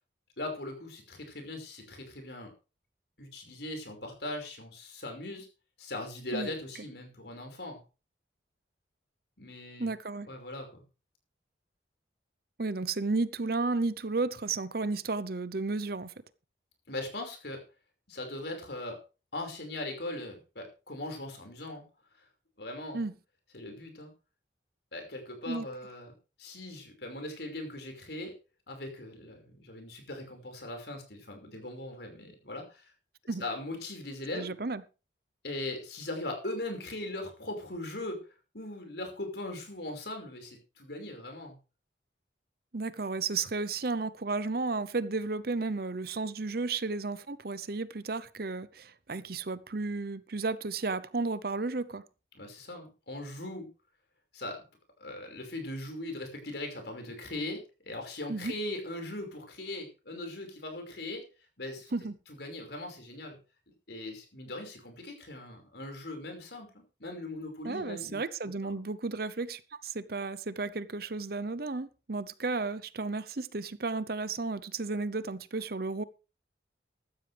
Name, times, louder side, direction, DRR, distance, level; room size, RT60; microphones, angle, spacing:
voice 1, 0.4-2.5 3.2-5.5 5.8-7.8 9.4-9.9 10.2-10.8 16.9-17.6 18.1-19.0 19.3-21.8 22.6-23.0 23.5-24.1 24.9-26.1 26.4-28.3 28.7-32.9 33.4-34.5 35.4-41.6 52.3-53.7 54.3-54.6 55.0-61.3 61.6-61.9 62.3-63.4 63.9-68.8, left 1 dB, 65° left, 5.4 m, -40 dB
voice 2, 9.8-10.3 12.6-16.1 22.9-23.1 25.5-25.7 33.3-33.4 34.3-34.8 42.7-52.0 58.3-58.5 61.9-62.2 67.6-76.0, right 3 dB, 55° right, 0.8 m, -33 dB
15.0 x 13.0 x 3.5 m
head